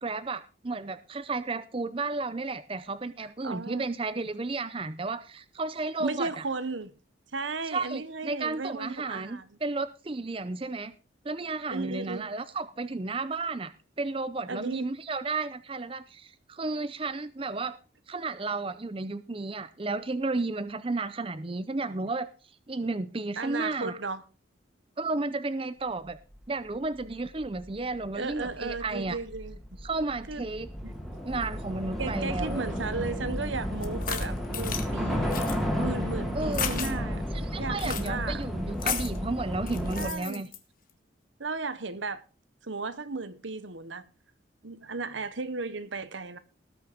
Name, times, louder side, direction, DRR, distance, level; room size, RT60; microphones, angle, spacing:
voice 1, 0.0-6.4 7.7-10.9 11.2-17.8 18.1-22.3 22.7-24.0 25.0-26.2 26.5-29.2 29.8-30.7 31.2-32.6 36.3-36.8 37.3-40.5, right 3 dB, 30° right, 0.6 m, -33 dB
voice 2, 3.4-3.9 6.0-6.9 7.3-9.6 11.7-12.3 14.5-14.9 23.4-24.2 28.1-29.6 30.3-30.5 30.8-31.2 32.0-35.4 35.8-37.2 37.6-38.5 40.0-40.4 41.4-42.2 42.6-44.0 44.6-46.4, right 3 dB, 75° right, 1.1 m, -35 dB
Train / Subway metro underground, 26.7-26.8 27.1-40.1, equal, ahead, 2.3 m, -33 dB
sound 1, 33.8-34.9 35.3-35.6 36.5-36.9 37.8-38.1 38.8-39.2 39.7-40.6, left 8 dB, 45° left, 1.5 m, -33 dB
18.5 x 6.3 x 5.0 m
head